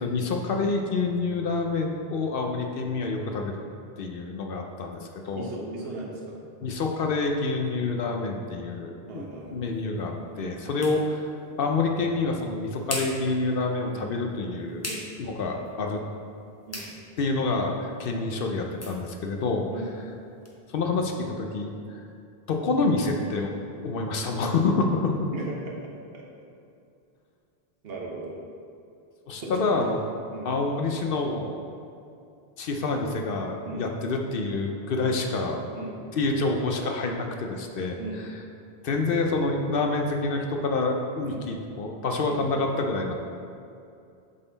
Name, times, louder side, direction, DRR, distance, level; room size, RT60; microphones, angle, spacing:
voice 1, 0.0-3.6 4.0-5.5 6.6-9.3 9.5-11.3 11.6-16.0 17.2-19.7 20.7-22.0 22.5-23.5 23.8-25.3 29.3-30.0 30.4-31.6 32.6-35.6 36.1-38.0 38.8-43.1, left 3 dB, 65° left, 3 dB, 0.8 m, -27 dB
voice 2, 5.3-6.4 9.1-9.6 10.4-10.6 13.9-14.1 14.8-15.1 16.7-16.9 19.7-19.9 25.3-25.7 26.1-26.3 27.8-28.4 29.3-29.8 30.3-30.5 33.6-33.8 35.7-36.0 38.0-38.3 41.3-41.4 42.3-42.4, right 2 dB, 70° right, -2 dB, 1.2 m, -37 dB
sound 1, 9.1-20.6, left 1 dB, 15° left, 0.7 m, -43 dB
7.4 x 4.0 x 3.9 m, 2.6 s
omnidirectional pair, 1.0 m